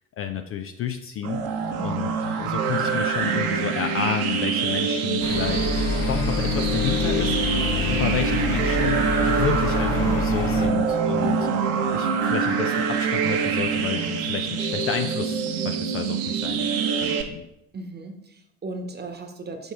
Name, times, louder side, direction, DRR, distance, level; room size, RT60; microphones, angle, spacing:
voice 1, 0.2-1.4 1.8-2.1 2.4-11.5 11.9-16.7 16.9-17.4, left 8 dB, 35° left, 7 dB, 0.5 m, -30 dB
sound 1, 1.2-17.2, right 6 dB, 55° right, 1.1 m, -25 dB
sound 2, 5.2-10.7, left 4 dB, 65° left, 1.5 m, -26 dB
voice 2, 7.7-8.1 17.7-19.7, right 3 dB, 25° right, 6 dB, 1.2 m, -36 dB
6.0 x 5.3 x 4.7 m, 0.84 s
figure-of-eight pair, 55°, 42 cm